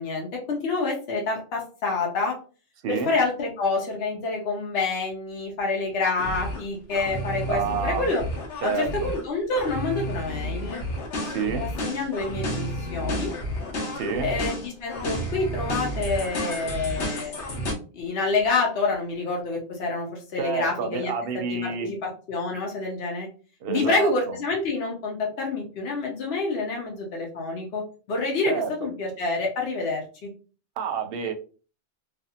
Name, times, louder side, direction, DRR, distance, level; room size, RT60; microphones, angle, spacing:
voice 1, 0.0-2.4 2.9-8.2 8.6-10.8 11.6-13.3 14.2-17.3 17.9-21.1 21.5-23.3 23.7-30.0, left 3 dB, 65° left, -1 dB, 1.0 m, -27 dB
sound 1, 6.2-6.6 6.9-9.2 9.5-17.7, equal, 85° left, 1.2 m, -31 dB
voice 2, 7.5-8.0 8.6-9.1 11.2-11.6 14.0-14.3 20.4-21.9 23.6-24.4 28.5-28.9 30.8-31.3, right 6 dB, 65° right, 6 dB, 0.7 m, -29 dB
2.4 x 2.4 x 2.7 m, 0.36 s
omnidirectional pair, 1.2 m